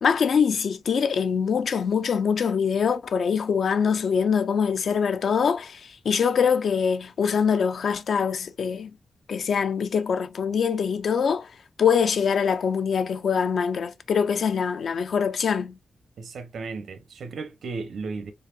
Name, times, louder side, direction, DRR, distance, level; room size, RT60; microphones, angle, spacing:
voice 1, 0.0-8.9 9.3-11.5 11.8-15.8, left 6 dB, 65° left, 0.5 m, -24 dB
voice 2, 16.2-18.3, right 4 dB, 90° right, 0.8 m, -35 dB
4.1 x 3.3 x 2.3 m
wide cardioid pair, 170°, 0 cm